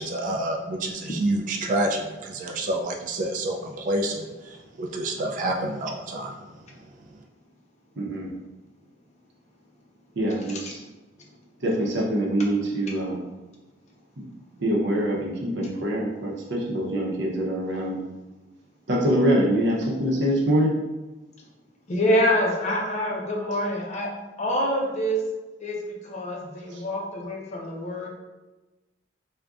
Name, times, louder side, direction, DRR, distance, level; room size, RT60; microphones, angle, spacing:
voice 1, 0.0-6.4, right 1 dB, 45° right, 1 dB, 0.3 m, -28 dB
voice 2, 8.0-8.3 10.2-10.8 11.6-13.2 14.6-18.0 18.9-20.7 26.7-26.8, right 1 dB, 80° right, -2 dB, 0.7 m, -24 dB
voice 3, 21.9-24.1 24.4-25.2 25.6-28.1, equal, 40° left, -1 dB, 0.5 m, -26 dB
3.6 x 2.1 x 2.3 m, 1.1 s
head